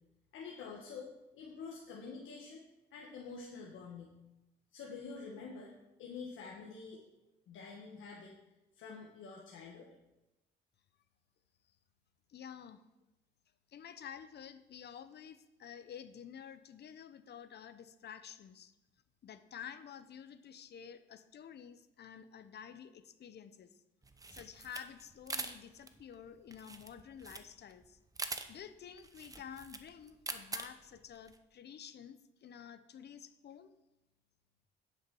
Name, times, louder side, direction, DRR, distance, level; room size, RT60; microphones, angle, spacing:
voice 1, 0.3-2.6 2.9-4.1 4.7-5.7 6.0-7.0 7.5-8.3 8.7-9.9, left 5 dB, 80° left, -2 dB, 1.5 m, -47 dB
voice 2, 12.3-12.8 13.7-18.7 19.2-23.8 24.3-28.0 28.5-33.7, left 8 dB, 55° left, 11 dB, 0.8 m, -50 dB
sound 1, 24.0-31.4, right 3 dB, 15° right, 0.9 m, -44 dB
10.5 x 6.3 x 5.4 m, 0.96 s
cardioid pair, 90°, 20 cm